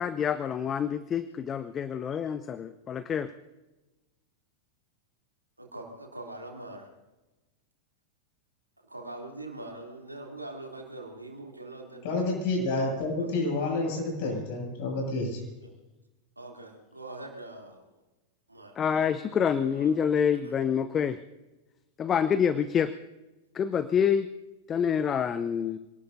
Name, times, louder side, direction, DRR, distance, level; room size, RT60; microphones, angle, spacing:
voice 1, 0.0-3.3 18.8-21.2 22.0-22.9 23.5-24.3 24.7-25.8, left 7 dB, 25° left, 13 dB, 0.6 m, -27 dB
voice 2, 5.6-6.9 8.8-12.1 12.7-13.4 15.6-15.7 16.4-17.9 18.5-19.1 19.4-19.9 20.4-20.5, right 2 dB, 85° right, 0 dB, 3.1 m, -43 dB
voice 3, 12.0-15.4, left 2 dB, 50° left, -1 dB, 7.4 m, -29 dB
26.5 x 19.0 x 2.7 m, 1.1 s
figure-of-eight pair, 90°, 0 cm